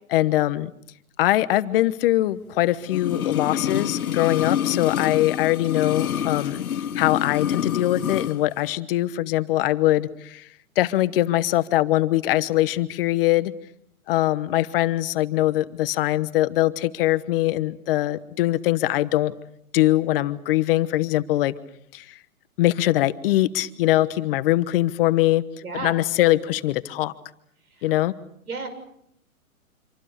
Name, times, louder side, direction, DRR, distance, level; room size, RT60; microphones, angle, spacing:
voice 1, 0.1-0.7 1.2-6.6 6.9-10.4 10.8-13.5 14.1-19.3 19.7-21.5 21.9-22.0 22.6-25.5 25.7-27.1 27.8-28.1, left 15 dB, 40° left, 15 dB, 1.2 m, -22 dB
sound 1, 2.9-8.4 8.6-8.7, left 9 dB, 80° left, 1.1 m, -27 dB
voice 2, 25.6-26.0 27.8-28.0 28.5-28.7, right 4 dB, 85° right, 8 dB, 6.6 m, -32 dB
26.5 x 25.5 x 6.7 m, 0.73 s
hypercardioid pair, 130°, 42 cm